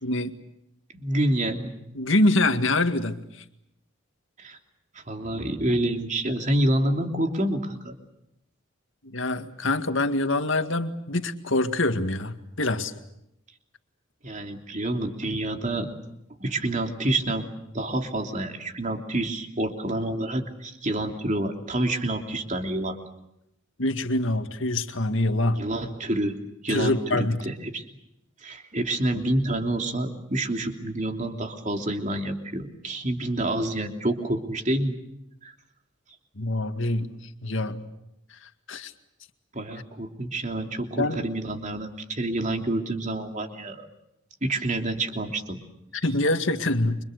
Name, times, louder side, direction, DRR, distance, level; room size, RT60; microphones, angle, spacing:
voice 1, 0.0-0.3 2.0-3.4 9.0-12.9 23.8-25.6 26.7-27.4 36.4-37.8 38.7-38.9 41.0-41.2 45.9-47.0, left 2 dB, 65° left, 8 dB, 2.0 m, -25 dB
voice 2, 0.9-1.7 4.4-4.6 4.9-7.9 14.2-15.9 16.4-17.5 17.7-23.0 25.6-26.4 26.6-27.8 28.4-35.0 35.4-35.5 39.5-43.9 44.4-45.6, right 1 dB, 35° right, 5 dB, 3.0 m, -28 dB
30.0 x 26.0 x 6.7 m, 0.82 s
head